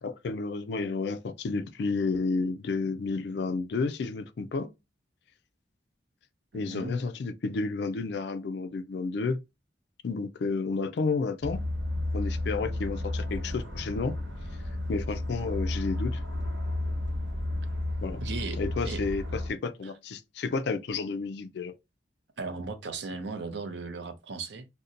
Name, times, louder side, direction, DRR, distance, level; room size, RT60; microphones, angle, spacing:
voice 1, 0.0-4.7 6.5-9.4 10.0-11.6 12.1-14.1 14.9-16.2 18.0-18.2 18.6-21.7, left 4 dB, 60° left, 0.4 m, -31 dB
voice 2, 6.5-6.9 18.2-19.0 19.8-19.9 22.4-24.7, right 4 dB, 65° right, 0.6 m, -37 dB
sound 1, 11.4-19.5, left 1 dB, 85° right, 1.3 m, -32 dB
2.7 x 2.1 x 3.7 m
head